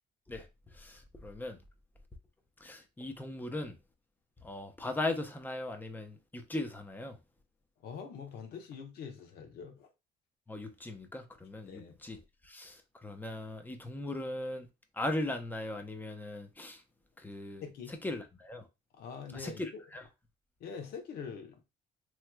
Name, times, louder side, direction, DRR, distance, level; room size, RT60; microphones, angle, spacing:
voice 1, 0.8-1.6 2.6-3.8 4.4-7.2 10.5-12.2 12.5-12.8 13.0-14.7 15.0-16.8 17.2-17.6 17.9-18.7 19.3-20.0, left 2 dB, 10° left, 0.6 m, -38 dB
voice 2, 7.8-9.9 11.6-12.0 17.6-17.9 19.0-19.8 20.6-21.6, left 6 dB, 70° left, 0.9 m, -44 dB
3.1 x 3.1 x 2.2 m
cardioid pair, 110°, 17 cm